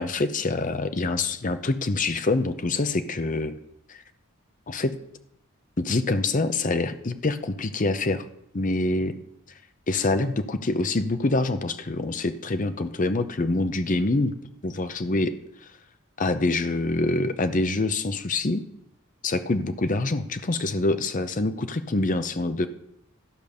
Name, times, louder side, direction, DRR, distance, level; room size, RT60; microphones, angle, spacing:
voice 1, 0.0-3.6 3.9-4.0 4.7-4.9 5.8-8.3 8.5-9.1 9.9-14.3 14.6-15.3 16.2-18.6 19.2-22.7, left 2 dB, 35° left, 10 dB, 0.7 m, -25 dB
13.0 x 5.2 x 6.5 m, 0.77 s
head